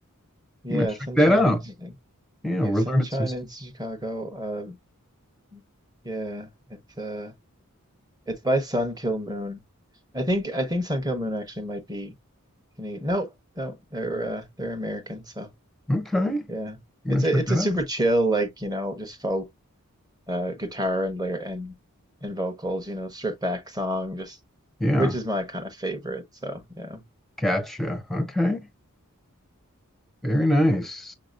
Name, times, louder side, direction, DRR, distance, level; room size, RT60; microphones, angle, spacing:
voice 1, 0.6-1.9 2.6-4.7 5.5-5.6 6.0-7.3 8.3-9.6 10.1-12.1 12.8-15.5 16.5-16.8 17.1-19.5 20.3-21.7 22.2-24.4 25.0-27.0, right 1 dB, 20° right, 1.1 m, -29 dB
voice 2, 1.2-1.6 2.4-3.3 15.9-16.4 17.0-17.7 24.8-25.1 27.4-28.6 30.2-31.1, left 1 dB, ahead, 0.7 m, -23 dB
6.5 x 2.9 x 2.5 m
head